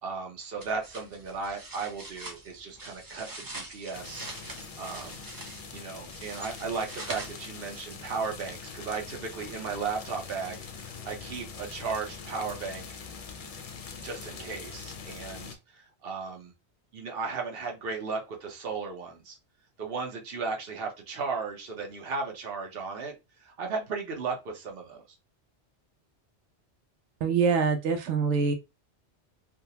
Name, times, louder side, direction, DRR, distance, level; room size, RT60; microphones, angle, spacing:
voice 1, 0.0-4.3 4.8-5.2 5.7-12.9 14.0-16.5 16.9-19.4 19.8-25.0, right 4 dB, 60° right, 1.0 m, -35 dB
sound 1, 0.6-8.0, right 2 dB, 25° right, 0.5 m, -44 dB
sound 2, 3.9-15.6, left 5 dB, 50° left, 0.4 m, -43 dB
voice 2, 27.2-28.5, right 5 dB, 85° right, 0.9 m, -24 dB
3.5 x 2.4 x 2.8 m
omnidirectional pair, 1.2 m